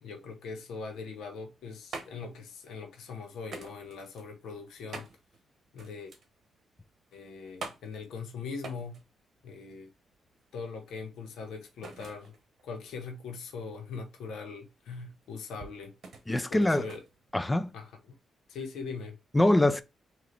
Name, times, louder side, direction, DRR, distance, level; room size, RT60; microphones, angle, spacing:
voice 1, 0.0-5.1 5.7-6.1 7.1-9.0 9.4-9.9 10.5-12.3 12.6-15.9 16.3-17.0 17.7-17.9 18.5-19.2, left 5 dB, 85° left, 0.9 m, -41 dB
sound 1, 1.5-18.0, right 4 dB, 60° right, 0.9 m, -48 dB
voice 2, 16.3-16.9 17.3-17.7 19.3-19.8, left 1 dB, 15° left, 0.4 m, -24 dB
3.7 x 2.8 x 3.3 m
cardioid pair, 95°, 0 cm